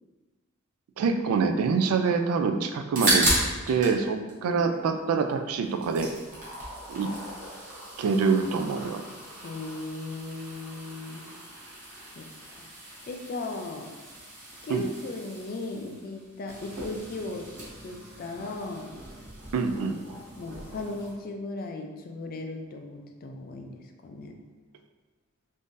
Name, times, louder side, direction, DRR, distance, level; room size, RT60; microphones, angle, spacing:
voice 1, 1.0-3.3 3.7-6.1 6.9-7.1 8.0-9.0 14.7-14.8 19.5-20.0, right 5 dB, 80° right, 6 dB, 0.3 m, -25 dB
sound 1, 2.7-4.0 4.3-5.3 5.6-21.1, right 1 dB, 40° right, 0.9 m, -35 dB
voice 2, 9.4-11.3 12.2-12.3 13.1-13.9 14.6-17.5 17.8-18.9 20.4-24.3, left 2 dB, 45° left, 4 dB, 0.3 m, -37 dB
3.7 x 2.6 x 2.5 m, 1.3 s
head